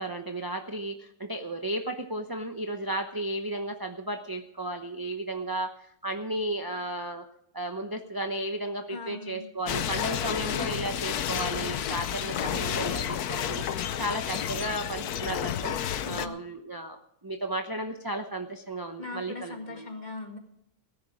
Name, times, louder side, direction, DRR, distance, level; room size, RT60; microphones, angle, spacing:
voice 1, 0.0-7.2 7.5-13.6 14.0-15.7 16.1-19.9, right 1 dB, 20° right, 4 dB, 0.7 m, -34 dB
voice 2, 8.9-9.5 16.0-16.4 19.0-20.4, left 3 dB, 30° left, 3 dB, 2.1 m, -40 dB
sound 1, 9.7-16.3, left 9 dB, 90° left, 1.3 m, -31 dB
18.0 x 10.0 x 4.9 m, 0.75 s
omnidirectional pair, 1.6 m